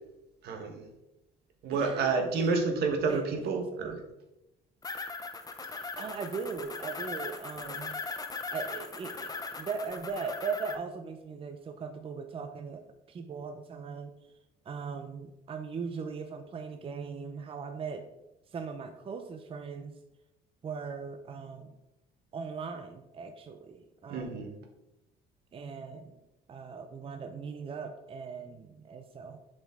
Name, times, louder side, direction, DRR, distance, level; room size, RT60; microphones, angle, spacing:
voice 1, 0.4-0.8 1.6-4.0 24.1-24.5, right 4 dB, 75° right, 4 dB, 1.3 m, -29 dB
voice 2, 1.7-2.3 3.1-4.0 5.7-8.0 8.5-12.8 13.1-14.1 14.6-18.0 18.5-20.0 20.6-21.8 22.3-24.5 25.5-26.2 26.5-29.4, right 5 dB, 35° right, 6 dB, 0.6 m, -39 dB
sound 1, 4.8-10.7, left 4 dB, 20° left, 0.7 m, -39 dB
7.2 x 5.2 x 3.6 m, 0.93 s
cardioid pair, 110°, 17 cm